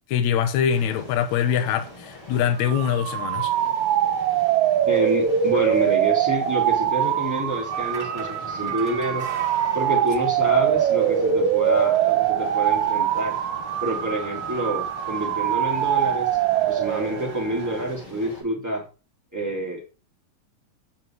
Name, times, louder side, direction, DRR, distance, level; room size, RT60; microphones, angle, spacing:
voice 1, 0.0-3.5, left 8 dB, 65° left, 2.2 m, -23 dB
sound 1, 0.7-18.4, left 2 dB, 45° left, 7.6 m, -43 dB
sound 2, 2.6-17.3, right 10 dB, 70° right, 2.0 m, -23 dB
voice 2, 4.9-9.3 9.7-13.4 13.8-16.3 16.5-18.8 19.3-19.9, right 1 dB, 5° right, 2.9 m, -27 dB
sound 3, 7.7-17.9, right 5 dB, 85° right, 0.4 m, -40 dB
9.9 x 6.7 x 4.6 m
omnidirectional pair, 3.8 m